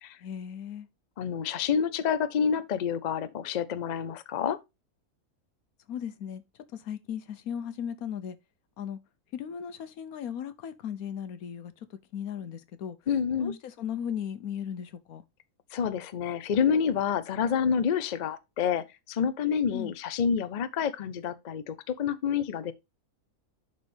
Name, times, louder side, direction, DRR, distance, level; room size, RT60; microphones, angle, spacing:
voice 1, 0.2-0.9 5.9-6.4 6.7-8.4 8.8-9.0 9.3-13.0 13.4-15.2 19.7-19.9, left 8 dB, 80° left, 1.3 m, -37 dB
voice 2, 1.2-4.6 13.1-13.6 15.7-22.7, left 7 dB, 60° left, 0.4 m, -28 dB
11.0 x 4.1 x 3.3 m
omnidirectional pair, 1.5 m